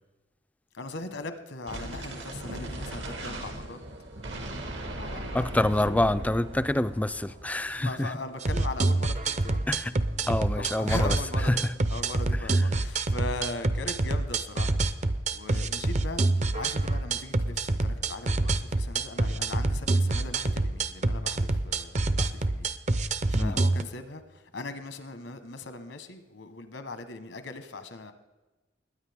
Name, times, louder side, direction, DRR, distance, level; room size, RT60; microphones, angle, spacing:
voice 1, 0.7-3.8 4.8-6.1 7.8-9.6 10.5-11.5 11.9-14.8 15.3-16.2 16.5-28.1, left 2 dB, 85° left, 1.3 m, -39 dB
sound 1, 1.7-11.9, right 1 dB, 80° right, 2.1 m, -40 dB
voice 2, 5.3-8.1 9.7-9.9 10.3-11.2 11.5-11.6 23.3-23.6, left 1 dB, 10° left, 0.3 m, -26 dB
sound 2, 8.4-23.8, right 2 dB, 40° right, 0.6 m, -26 dB
21.0 x 9.8 x 3.6 m
head